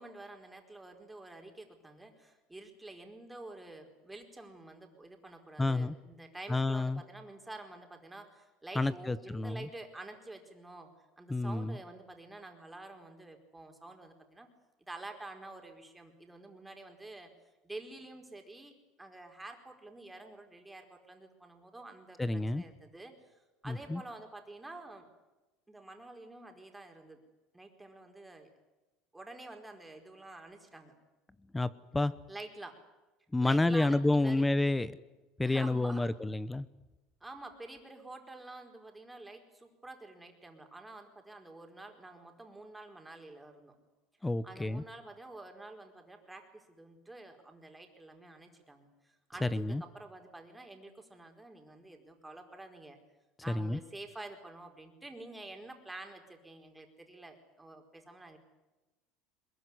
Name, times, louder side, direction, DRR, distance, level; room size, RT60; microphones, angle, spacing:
voice 1, 0.0-10.9 11.2-14.5 14.8-17.3 17.6-25.0 25.7-27.2 27.5-28.5 29.1-30.9 32.3-32.8 33.4-34.4 35.4-36.1 37.2-43.8 44.4-53.0 53.4-58.4, right 2 dB, 10° right, 4 dB, 4.7 m, -49 dB
voice 2, 5.6-5.9 6.5-7.0 8.8-9.6 11.3-11.8 22.2-22.6 23.7-24.0 31.5-32.1 33.3-34.9 35.4-36.7 44.2-44.8 49.4-49.8 53.5-53.8, left 2 dB, 10° left, 16 dB, 0.9 m, -29 dB
22.0 x 21.5 x 9.8 m, 1.1 s
supercardioid pair, 115°, 0 cm